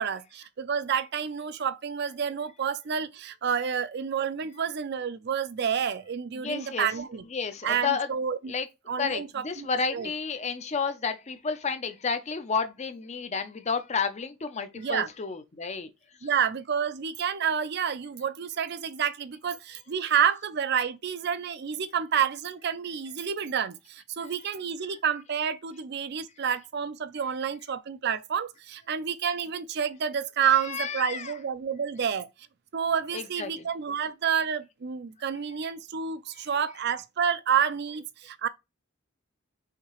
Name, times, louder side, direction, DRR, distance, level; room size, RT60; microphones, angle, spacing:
voice 1, 0.0-7.3 7.6-8.5 8.9-10.1 14.8-15.1 16.2-32.3 32.7-38.5, right 7 dB, 50° right, 0.4 m, -29 dB
voice 2, 6.4-6.9 7.3-8.1 8.5-8.7 9.0-15.9 30.6-31.3 33.1-33.7, left 5 dB, 35° left, 0.6 m, -31 dB
5.8 x 2.8 x 3.1 m
head